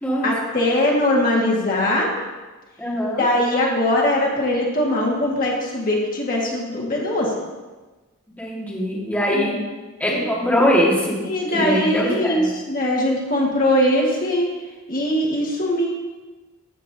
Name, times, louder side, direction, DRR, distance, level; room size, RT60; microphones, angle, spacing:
voice 1, 0.2-2.1 3.2-7.3 9.3-9.5 10.1-10.3 11.3-14.5 14.9-15.9, left 1 dB, 40° left, -3 dB, 1.7 m, -21 dB
voice 2, 2.8-3.3 8.4-9.5 10.0-11.2 11.5-12.5, equal, 5° left, -5 dB, 1.7 m, -21 dB
14.0 x 8.3 x 2.8 m, 1.2 s
head